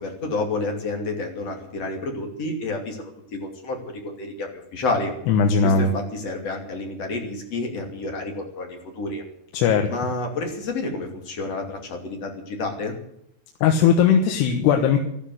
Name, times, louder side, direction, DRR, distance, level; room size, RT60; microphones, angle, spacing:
voice 1, 0.0-5.1 5.6-9.2 9.9-13.0, left 2 dB, 40° left, 2 dB, 3.5 m, -29 dB
voice 2, 5.3-5.9 9.5-9.9 13.6-15.0, left 6 dB, 85° left, 3 dB, 3.4 m, -18 dB
13.5 x 13.0 x 7.9 m, 0.75 s
omnidirectional pair, 4.6 m